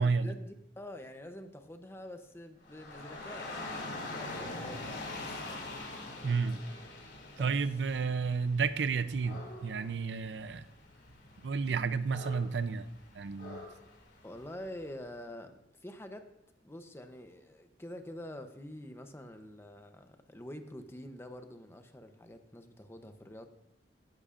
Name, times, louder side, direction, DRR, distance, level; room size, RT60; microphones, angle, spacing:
voice 1, 0.0-5.7 7.4-7.6 14.2-16.3 16.6-23.5, left 1 dB, 15° left, 7 dB, 0.7 m, -47 dB
Dog / Rain, 2.6-14.8, left 2 dB, 80° left, 2.9 m, -44 dB
voice 2, 6.2-6.6 7.4-10.7 11.4-12.9 13.2-13.7, right 5 dB, 75° right, 13 dB, 0.5 m, -31 dB
17.0 x 11.0 x 2.5 m, 0.81 s
head